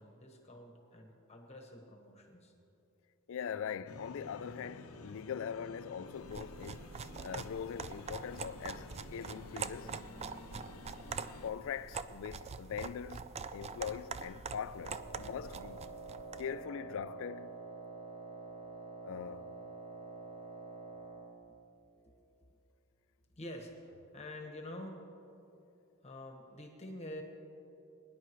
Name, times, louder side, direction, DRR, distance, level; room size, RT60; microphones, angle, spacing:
voice 1, 0.0-2.5 23.4-25.1 26.0-27.2, left 1 dB, 30° left, 1.3 m, -47 dB
voice 2, 3.3-6.9 7.2-9.9 11.4-15.8 16.4-17.6 19.0-19.5, left 7 dB, 65° left, 0.4 m, -42 dB
sound 1, 3.9-11.5, left 2 dB, 80° left, 0.8 m, -52 dB
sound 2, 6.2-16.5, right 5 dB, 30° right, 0.3 m, -44 dB
Wind instrument woodwind instrument, 14.7-21.4, right 3 dB, 55° right, 2.9 m, -47 dB
21.5 x 10.5 x 3.1 m
head